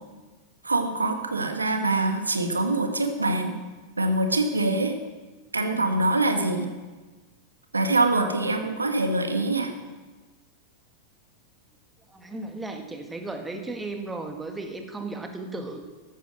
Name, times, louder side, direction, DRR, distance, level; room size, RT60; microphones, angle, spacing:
voice 1, 0.6-3.6 4.0-4.9 5.5-6.7 7.7-9.7, right 2 dB, 80° right, 6 dB, 1.6 m, -24 dB
voice 2, 12.1-15.8, right 2 dB, 10° right, 5 dB, 1.8 m, -35 dB
14.5 x 12.0 x 6.4 m, 1.3 s
figure-of-eight pair, 90°, 0 cm